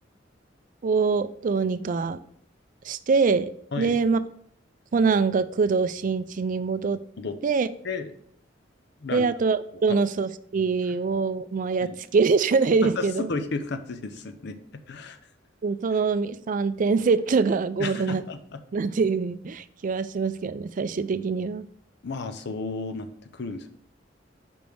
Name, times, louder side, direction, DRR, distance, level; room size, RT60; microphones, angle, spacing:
voice 1, 0.8-2.2 2.8-3.5 3.8-4.2 4.9-7.0 7.4-7.7 9.1-13.3 15.6-18.2 18.7-21.7, right 4 dB, 45° right, 13 dB, 0.4 m, -24 dB
voice 2, 12.8-14.6 14.9-15.2 17.8-18.6 22.0-23.1 23.3-23.7, left 3 dB, 60° left, 9 dB, 0.6 m, -32 dB
5.2 x 5.1 x 4.6 m, 0.64 s
head